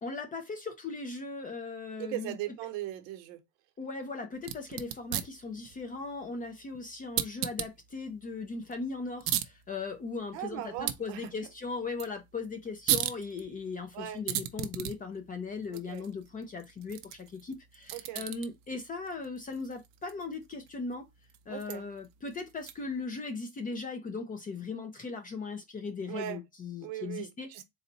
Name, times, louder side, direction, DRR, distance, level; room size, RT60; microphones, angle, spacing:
voice 1, 0.0-2.3 3.8-21.1 21.5-27.5, left 4 dB, 20° left, 0.5 m, -38 dB
voice 2, 2.0-3.4 10.3-11.5 13.9-14.2 15.7-16.1 17.9-18.2 21.5-21.9 26.1-26.4 26.8-27.6, right 13 dB, 75° right, 0.9 m, -39 dB
sound 1, 4.4-23.0, right 12 dB, 50° right, 0.5 m, -39 dB
4.0 x 2.2 x 3.9 m
cardioid pair, 160°, 44 cm